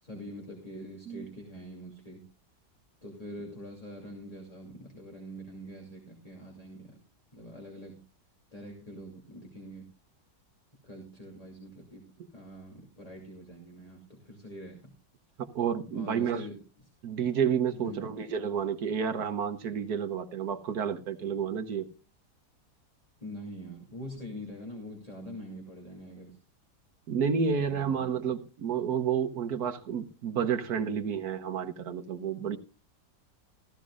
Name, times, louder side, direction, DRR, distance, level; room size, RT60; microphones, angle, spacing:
voice 1, 0.0-2.2 3.0-7.0 7.3-8.0 8.5-9.8 10.8-12.0 12.3-14.9 15.9-16.6 17.7-18.1 23.2-26.4 27.5-28.1, equal, 20° left, 2.7 m, -44 dB
voice 2, 15.4-16.4 17.0-21.9 27.1-32.6, right 7 dB, 65° right, 1.4 m, -30 dB
15.0 x 15.0 x 2.4 m
omnidirectional pair, 1.9 m